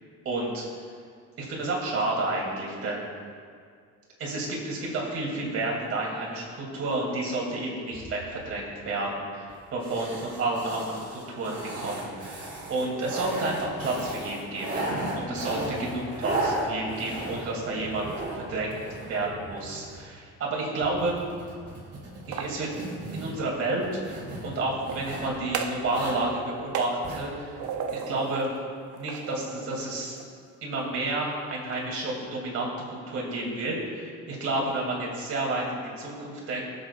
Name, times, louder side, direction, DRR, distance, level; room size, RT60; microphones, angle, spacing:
voice 1, 0.2-0.6 1.4-3.1 4.2-14.8 15.2-18.7 19.0-21.2 22.3-22.7 23.1-27.6 27.9-28.5 28.9-30.2 30.6-36.6, right 2 dB, 50° right, -2 dB, 2.7 m, -30 dB
sound 1, 7.9-8.6 9.5-9.6 9.8-20.1 20.8-25.4 25.8-26.3 27.0-27.3 27.6-27.7, right 2 dB, 35° right, 3.1 m, -35 dB
sound 2, 22.1-23.6 24.7-25.9 26.2-28.5 28.9-30.3, right 6 dB, 80° right, 0.9 m, -37 dB
22.0 x 7.8 x 2.5 m, 2.1 s
cardioid pair, 155°, 29 cm